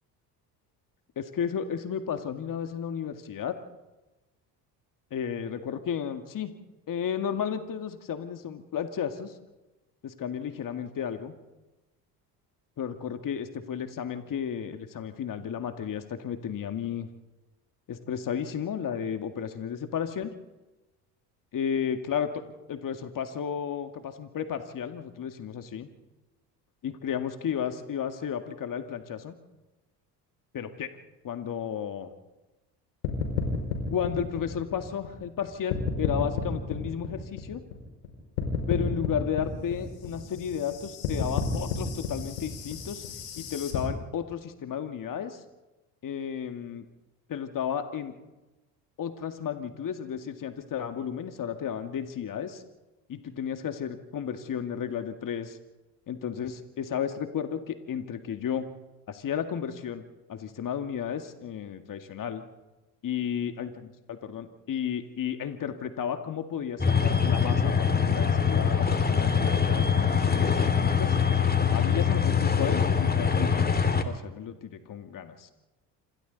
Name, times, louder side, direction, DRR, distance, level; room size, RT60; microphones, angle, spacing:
voice 1, 1.2-3.6 5.1-6.5 6.9-9.3 10.0-11.3 12.8-17.1 17.9-20.3 21.5-22.3 22.7-25.9 26.8-29.3 30.5-30.9 31.2-32.1 33.9-37.6 38.7-43.0 43.4-45.4 46.0-46.9 47.3-48.1 49.0-52.6 53.1-55.6 56.1-58.7 59.1-60.0 60.3-62.4 63.0-63.7 64.1-71.2 71.7-73.8 74.0-75.5, left 8 dB, 40° left, 7 dB, 2.0 m, -33 dB
sound 1, 33.0-35.4 35.7-38.1 38.4-43.8, left 6 dB, 80° left, 5.6 m, -32 dB
sound 2, 66.8-74.0, left 6 dB, 20° left, 2.5 m, -23 dB
27.5 x 26.0 x 4.1 m, 1.1 s
hypercardioid pair, 60°, 47 cm